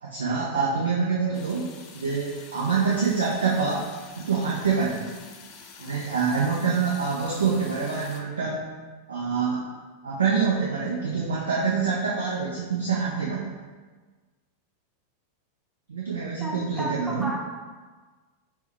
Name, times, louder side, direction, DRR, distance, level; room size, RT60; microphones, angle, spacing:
voice 1, 0.0-1.7 1.9-3.9 4.2-5.1 5.8-8.7 9.1-9.6 10.0-13.5 15.9-17.3, right 5 dB, 70° right, -4 dB, 0.5 m, -26 dB
sound 1, 1.3-8.2, left 5 dB, 40° left, 0.4 m, -47 dB
voice 2, 16.4-17.4, equal, 10° right, -2 dB, 0.7 m, -32 dB
4.4 x 2.1 x 3.5 m, 1.3 s
figure-of-eight pair, 90°, 0 cm